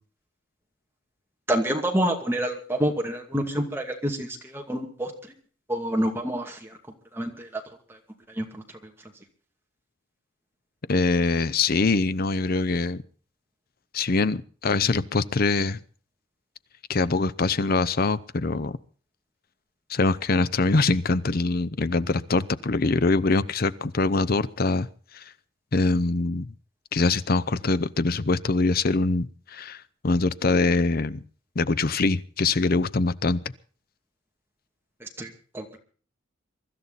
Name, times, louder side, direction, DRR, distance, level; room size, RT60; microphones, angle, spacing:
voice 1, 1.5-5.1 5.7-6.7 7.1-7.6 8.4-8.6 35.0-35.8, right 1 dB, 10° right, 2.4 m, -28 dB
voice 2, 10.9-13.0 13.9-15.8 16.9-18.8 19.9-24.9 25.1-25.2 25.7-26.5 26.9-31.2 31.6-33.4, left 3 dB, 50° left, 0.7 m, -23 dB
23.5 x 13.0 x 4.1 m
head